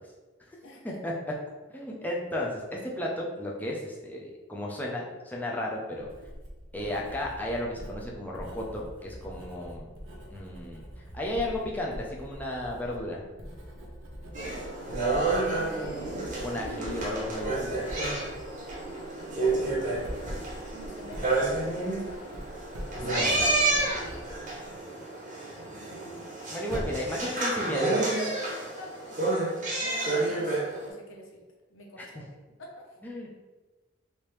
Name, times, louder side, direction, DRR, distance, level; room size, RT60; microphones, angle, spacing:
voice 1, 0.6-1.0 15.2-16.3 20.7-22.2 22.9-24.4 27.6-29.4 29.8-31.4 31.7-32.2 32.6-32.9, left 1 dB, 80° left, 0 dB, 0.7 m, -43 dB
voice 2, 1.7-6.1 6.7-9.9 10.3-10.8 11.1-13.2 16.4-17.8 23.0-23.5 26.5-28.0 32.0-32.2 33.0-33.3, left 1 dB, 10° left, -2 dB, 0.5 m, -34 dB
Writing, 6.0-24.8, equal, 75° right, 0.7 m, -44 dB
sound 1, 14.3-30.9, right 2 dB, 40° right, 0.8 m, -30 dB
3.3 x 2.7 x 3.0 m, 1.2 s
head